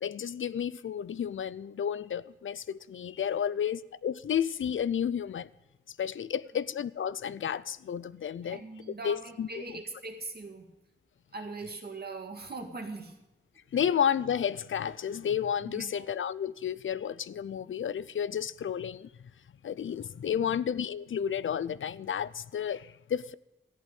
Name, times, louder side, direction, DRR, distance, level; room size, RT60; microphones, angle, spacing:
voice 1, 0.0-5.5 5.9-9.8 13.7-19.1 19.6-23.3, left 8 dB, 85° left, 0.5 m, -32 dB
voice 2, 8.5-10.7 11.3-13.1 15.6-16.1 20.4-20.5, right 3 dB, 55° right, 2.0 m, -41 dB
14.0 x 8.3 x 9.1 m
wide cardioid pair, 100°, 20 cm